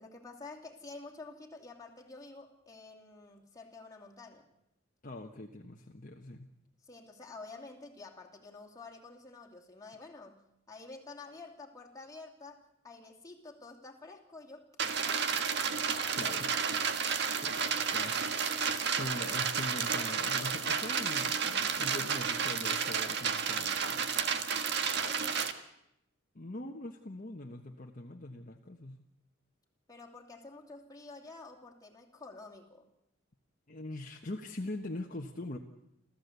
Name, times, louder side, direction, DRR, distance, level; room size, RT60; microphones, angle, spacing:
voice 1, 0.0-4.5 6.8-10.4 10.7-14.7 15.0-15.5 24.9-25.6 29.9-32.9, left 3 dB, 15° left, 0 dB, 2.9 m, -49 dB
voice 2, 5.0-6.5 16.1-16.5 17.4-18.2 19.0-24.0 26.3-29.0 33.7-35.6, left 1 dB, 40° left, 2 dB, 1.3 m, -42 dB
sound 1, 14.8-25.5, right 6 dB, 55° right, 1.6 m, -31 dB
29.5 x 14.5 x 8.2 m, 0.82 s
head